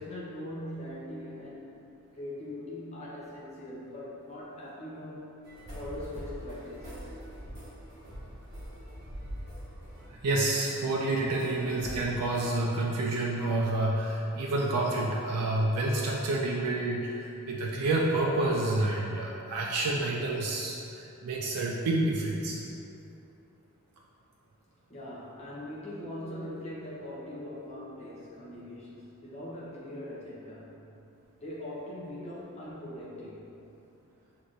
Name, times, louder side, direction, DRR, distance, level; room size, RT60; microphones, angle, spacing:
voice 1, 0.0-1.7 2.1-5.3 5.7-7.1 24.9-30.8 31.4-33.4, left 1 dB, 30° left, -7 dB, 0.8 m, -41 dB
sound 1, 5.4-12.6, equal, 50° right, 1.5 m, -44 dB
voice 2, 10.1-22.6, right 2 dB, 90° right, -2 dB, 0.4 m, -29 dB
6.2 x 2.9 x 2.6 m, 2.9 s
head